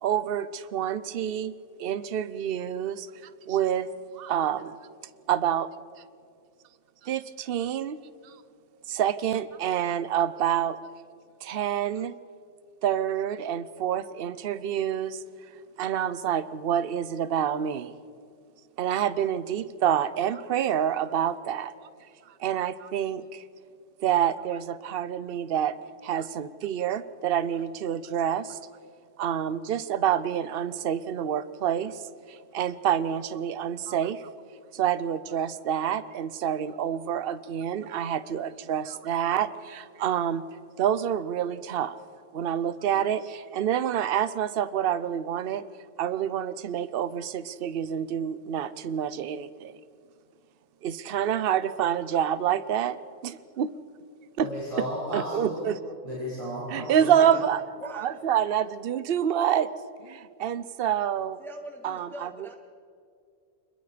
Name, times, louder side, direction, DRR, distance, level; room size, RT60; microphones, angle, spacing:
voice 1, 0.0-3.1 3.5-3.9 4.2-4.7 5.3-5.7 7.0-8.0 8.2-8.3 8.9-10.8 11.4-12.1 12.8-15.2 15.8-17.9 18.8-21.7 22.4-23.4 24.0-25.7 26.0-28.6 29.2-32.0 32.5-34.3 34.7-40.4 40.8-42.0 42.3-45.7 46.0-49.7 50.8-53.7 54.4-54.5 55.1-55.7 56.7-57.6 57.9-59.7 60.0-61.4 61.8-62.5, right 9 dB, 55° right, 15 dB, 0.9 m, -27 dB
voice 2, 54.4-55.7 56.0-57.3, equal, 25° right, -10 dB, 6.9 m, -34 dB
voice 3, 57.0-57.4 57.8-58.1 61.4-62.6, right 1 dB, ahead, 4 dB, 1.3 m, -41 dB
25.5 x 21.5 x 5.1 m, 2.3 s
omnidirectional pair, 1.3 m